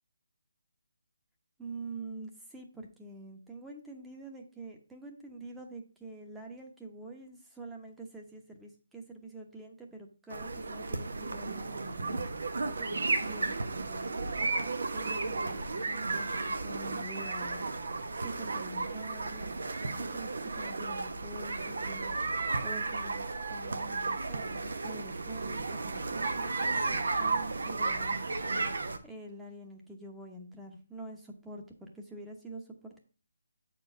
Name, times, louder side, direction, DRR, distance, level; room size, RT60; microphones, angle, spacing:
voice 1, 1.6-12.3 12.8-17.6 18.1-19.7 20.0-22.2 22.6-28.2 29.0-33.0, right 2 dB, 5° right, 1 dB, 1.0 m, -46 dB
sound 1, 10.3-29.0, right 3 dB, 70° right, 1.0 m, -34 dB
7.9 x 4.6 x 4.3 m, 0.37 s
hypercardioid pair, 160°, 0 cm